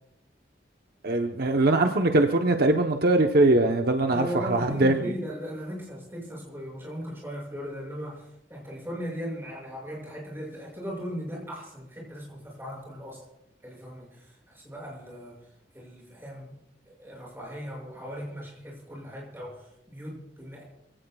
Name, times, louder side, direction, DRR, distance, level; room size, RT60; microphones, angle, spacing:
voice 1, 1.0-5.1, right 2 dB, 60° right, 4 dB, 1.0 m, -22 dB
voice 2, 4.1-13.2 13.6-15.4 15.7-16.5 16.8-20.6, equal, 15° right, -3 dB, 6.7 m, -38 dB
26.5 x 17.0 x 2.4 m, 0.84 s
head